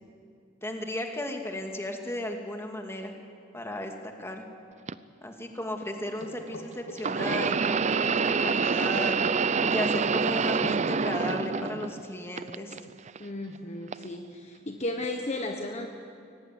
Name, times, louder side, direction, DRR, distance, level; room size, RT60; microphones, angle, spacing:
voice 1, 0.6-3.1 3.5-4.4 5.2-9.2 9.7-12.8, left 1 dB, 15° left, 3 dB, 2.3 m, -35 dB
sound 1, 4.9-5.0 7.0-12.0 12.4-13.2 13.9-14.1 15.0-15.1, right 5 dB, 35° right, 0.5 m, -26 dB
sound 2, 6.2-7.6 9.2-10.8, left 1 dB, 60° left, 2.7 m, -39 dB
voice 2, 13.2-15.9, left 2 dB, 35° left, 3 dB, 1.3 m, -34 dB
24.5 x 18.0 x 9.4 m, 2.5 s
head